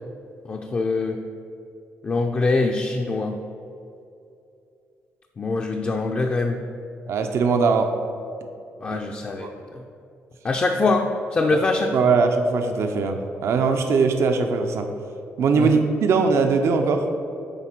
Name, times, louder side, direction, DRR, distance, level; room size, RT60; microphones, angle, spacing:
voice 1, 0.5-1.2 2.0-3.4 5.4-6.6 8.8-9.5 9.7-9.8 10.4-12.1 15.6-15.7, left 3 dB, 30° left, 2 dB, 0.4 m, -23 dB
voice 2, 7.1-7.9 8.9-9.0 9.3-9.5 11.9-14.9 15.4-17.0, right 4 dB, 65° right, 5 dB, 0.6 m, -21 dB
9.0 x 3.6 x 5.9 m, 2.6 s
cardioid pair, 140°, 5 cm